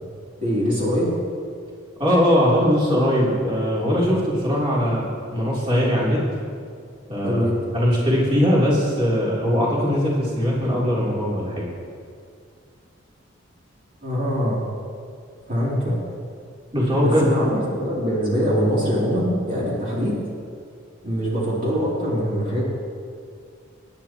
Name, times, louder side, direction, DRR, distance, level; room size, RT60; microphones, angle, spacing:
voice 1, 0.4-1.1 7.2-7.6 14.0-14.6 15.5-16.0 17.0-20.2 21.0-22.6, equal, 40° right, -7 dB, 3.0 m, -23 dB
voice 2, 2.0-5.1 5.3-6.2 7.1-7.4 7.7-11.6 16.7-17.3, equal, 25° right, -6 dB, 3.3 m, -20 dB
26.0 x 10.5 x 3.0 m, 2.3 s
head